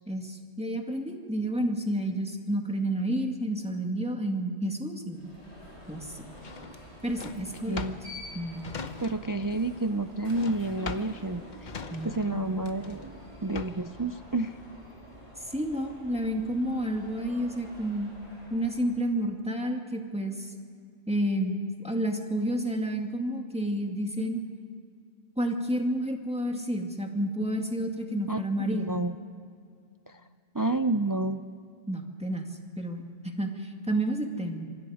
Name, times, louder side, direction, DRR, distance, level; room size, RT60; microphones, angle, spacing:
voice 1, 0.1-5.2 5.9-6.3 7.0-7.9 8.3-8.7 11.9-12.5 15.5-18.1 18.5-20.5 21.1-21.6 21.8-24.4 25.4-28.9 31.9-32.5 32.8-34.7, right 1 dB, 5° right, 2 dB, 2.0 m, -30 dB
Alarm, 5.1-19.0, left 1 dB, 90° left, 7.0 m, -48 dB
Drawer open or close, 6.4-9.5 9.7-14.0, left 5 dB, 45° left, 0.9 m, -41 dB
voice 2, 7.4-8.0 9.0-11.7 12.0-13.1 13.4-14.6 28.3-29.2 30.1-30.2 30.5-31.4, right 2 dB, 25° right, 10 dB, 0.4 m, -30 dB
26.5 x 24.5 x 5.0 m, 2.3 s
omnidirectional pair, 1.1 m